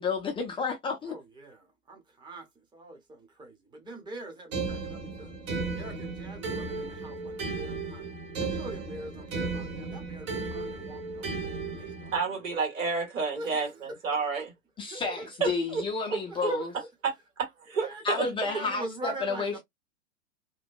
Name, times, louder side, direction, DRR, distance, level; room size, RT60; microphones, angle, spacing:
voice 1, 0.0-1.1 14.8-16.7 18.0-19.6, left 4 dB, 15° left, 0.5 m, -31 dB
voice 2, 1.0-5.3 5.7-12.4 13.3-14.3 14.9-15.3 16.3-16.8 17.8-19.6, right 2 dB, 10° right, 0.9 m, -43 dB
sound 1, 4.5-12.2, right 3 dB, 45° right, 1.4 m, -35 dB
voice 3, 12.1-14.5 15.4-15.8 16.1-16.5 17.0-17.1 17.4-18.3, right 5 dB, 70° right, 1.7 m, -30 dB
2.9 x 2.1 x 2.4 m
hypercardioid pair, 100°, 40 cm